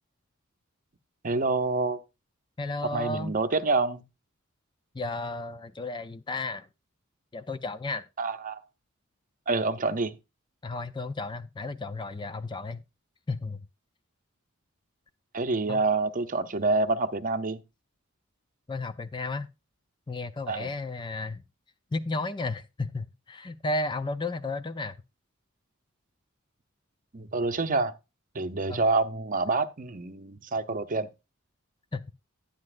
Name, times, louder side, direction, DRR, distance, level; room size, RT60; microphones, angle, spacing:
voice 1, 1.2-2.0 2.9-4.0 8.2-8.6 9.5-10.1 15.3-17.6 20.5-20.7 27.1-27.9 28.3-31.1, right 3 dB, 40° right, 0.7 m, -27 dB
voice 2, 2.6-3.3 4.9-6.7 7.3-8.1 10.6-12.8 13.3-13.6 15.7-15.8 18.7-19.5 20.1-21.4 21.9-25.0 28.7-28.8 31.9-32.1, left 2 dB, 20° left, 0.4 m, -33 dB
10.5 x 9.8 x 2.5 m
head